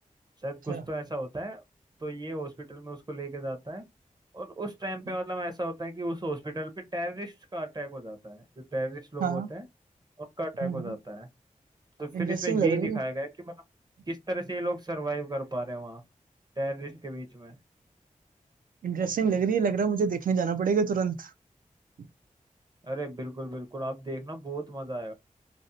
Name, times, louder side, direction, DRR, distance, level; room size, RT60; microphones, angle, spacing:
voice 1, 0.4-1.6 2.0-3.9 4.3-8.4 8.7-9.7 10.2-11.3 12.0-13.5 14.1-16.0 16.6-17.6 22.8-25.1, right 1 dB, 30° right, 0.7 m, -34 dB
voice 2, 10.6-10.9 12.1-13.0 18.8-21.3, right 6 dB, 80° right, 0.4 m, -27 dB
2.5 x 2.1 x 2.6 m
cardioid pair, 50°, 14 cm